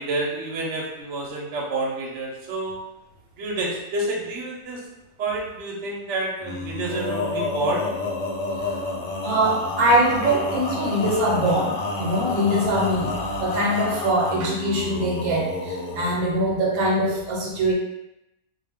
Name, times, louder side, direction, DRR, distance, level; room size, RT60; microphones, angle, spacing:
voice 1, 0.0-2.8 3.4-4.8 5.2-7.9, right 2 dB, 65° right, -2 dB, 0.9 m, -29 dB
Male singing, 6.4-16.2, left 2 dB, 65° left, 0.9 m, -29 dB
voice 2, 9.2-17.7, right 1 dB, 90° right, -2 dB, 1.1 m, -23 dB
2.3 x 2.3 x 3.4 m, 0.88 s
omnidirectional pair, 1.4 m